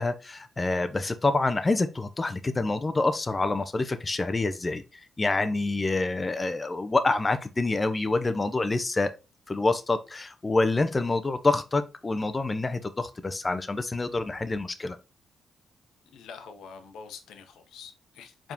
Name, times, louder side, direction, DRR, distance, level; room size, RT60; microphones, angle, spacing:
voice 1, 0.0-9.1 9.5-15.0, left 3 dB, 25° left, 0.5 m, -27 dB
voice 2, 16.1-18.5, left 6 dB, 85° left, 0.8 m, -45 dB
4.6 x 3.5 x 2.7 m
cardioid pair, 85°, 0 cm